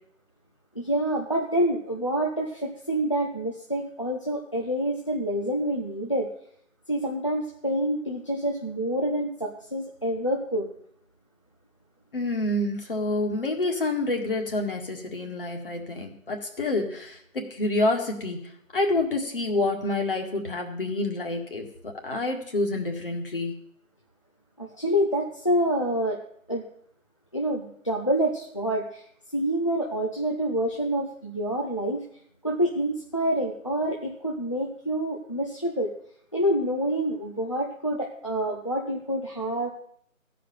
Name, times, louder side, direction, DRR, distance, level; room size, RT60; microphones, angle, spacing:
voice 1, 0.7-6.3 6.9-10.7 24.6-26.2 26.5-26.7 27.3-29.0 29.3-32.1 32.4-35.9 36.3-39.7, right 1 dB, 25° left, 0 dB, 0.6 m, -27 dB
voice 2, 12.1-18.4 18.7-23.5, left 2 dB, 40° left, 3 dB, 1.9 m, -28 dB
14.0 x 5.1 x 9.0 m, 0.67 s
figure-of-eight pair, 160°, 41 cm